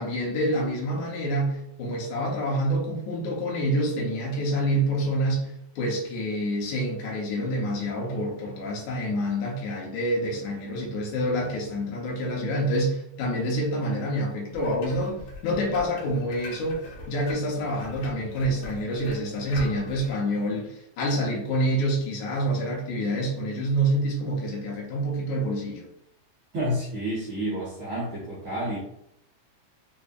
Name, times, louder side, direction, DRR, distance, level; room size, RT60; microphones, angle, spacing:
voice 1, 0.0-25.9, equal, 80° left, -3 dB, 2.1 m, -27 dB
sound 1, 14.5-20.1, left 2 dB, 65° left, 1.6 m, -42 dB
voice 2, 26.5-28.8, equal, 85° right, -9 dB, 1.0 m, -29 dB
4.9 x 2.6 x 2.3 m, 0.77 s
omnidirectional pair, 3.4 m